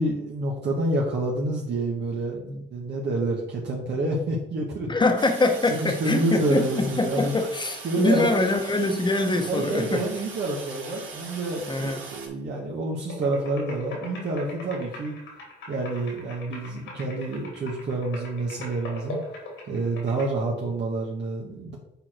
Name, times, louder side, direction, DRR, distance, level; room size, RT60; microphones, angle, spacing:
voice 1, 0.0-4.9 5.8-7.3 7.8-8.3 9.5-15.2 15.7-19.2 19.7-21.8, right 2 dB, 60° right, -3 dB, 1.6 m, -28 dB
voice 2, 4.9-10.0 11.7-12.0, left 2 dB, 25° left, 5 dB, 1.3 m, -24 dB
Toilet flush, 5.2-12.3, right 4 dB, 75° right, 2.1 m, -40 dB
sound 1, 13.1-20.3, left 2 dB, 80° left, 3.1 m, -40 dB
7.6 x 4.5 x 4.5 m, 0.77 s
cardioid pair, 90°, 20 cm